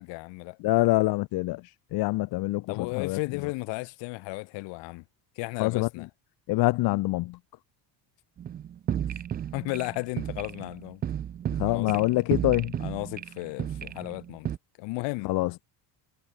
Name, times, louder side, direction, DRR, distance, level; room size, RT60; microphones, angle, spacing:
voice 1, 0.0-0.6 2.7-5.0 5.4-6.1 9.1-9.2 9.5-11.0 11.7-12.0 12.8-14.5 14.8-15.3, left 25 dB, 75° left, 1.8 m, -34 dB
voice 2, 0.6-1.6 1.9-3.2 5.6-5.9 6.5-7.4 11.6-12.7 15.2-15.5, left 19 dB, 55° left, 1.0 m, -25 dB
sound 1, 8.4-14.6, right 10 dB, 25° right, 0.4 m, -33 dB
cardioid pair, 160°, 43 cm